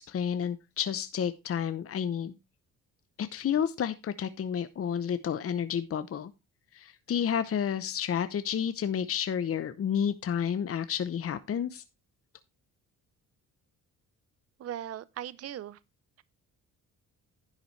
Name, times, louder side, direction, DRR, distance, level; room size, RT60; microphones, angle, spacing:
voice 1, 0.0-2.4 3.2-6.3 6.7-11.8, left 8 dB, 40° left, 0.8 m, -30 dB
voice 2, 14.6-15.8, right 11 dB, 45° right, 0.6 m, -38 dB
10.5 x 7.9 x 3.2 m
cardioid pair, 90°, 34 cm